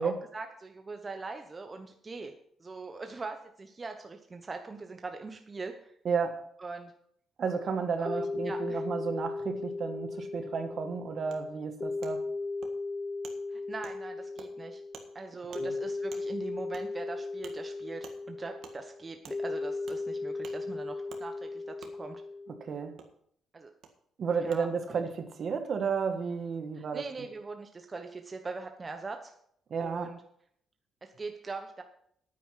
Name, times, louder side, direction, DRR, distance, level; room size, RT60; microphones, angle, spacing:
voice 1, 0.0-2.3 2.6-5.9 6.6-6.9 8.0-8.8 13.5-14.8 15.1-22.2 23.5-23.7 24.4-25.0 26.8-29.3 29.8-30.2 31.0-31.8, right 3 dB, 30° right, 1.1 m, -41 dB
voice 2, 6.0-6.4 7.4-12.3 15.6-15.8 22.5-23.0 24.2-27.0 29.7-30.1, right 5 dB, 55° right, 1.5 m, -32 dB
sound 1, 7.5-22.9, left 3 dB, 25° left, 0.5 m, -37 dB
Wood, 11.3-11.4 12.0-12.1 12.6-12.7 13.2-13.4 13.8-14.0 14.4-14.5 14.9-15.1 15.5-15.6 16.1-16.2 16.7-16.8 17.4-17.5 18.0-18.2 18.6-18.8 19.2-19.4 19.9-20.0 20.4-20.6 21.1-21.2 21.8-21.9 23.0-23.1 23.8-23.9 24.5-24.6, right 7 dB, 75° right, 1.6 m, -48 dB
9.3 x 9.3 x 5.8 m
cardioid pair, 90°, 0 cm